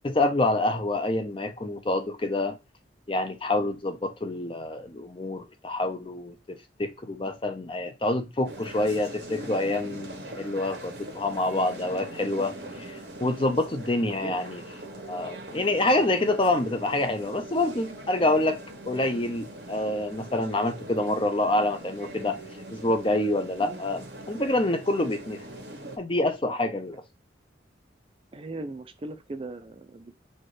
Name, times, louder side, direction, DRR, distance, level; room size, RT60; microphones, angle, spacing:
voice 1, 0.0-2.5 3.1-14.6 14.9-18.6 18.9-22.4 22.7-24.0 24.3-25.4 26.0-27.0, left 2 dB, 30° left, 0.6 m, -27 dB
sound 1, 8.4-26.0, right 1 dB, 65° right, 1.0 m, -42 dB
voice 2, 14.0-14.4 23.4-23.8 28.3-30.1, right 2 dB, 30° right, 0.4 m, -39 dB
4.3 x 2.4 x 4.8 m
head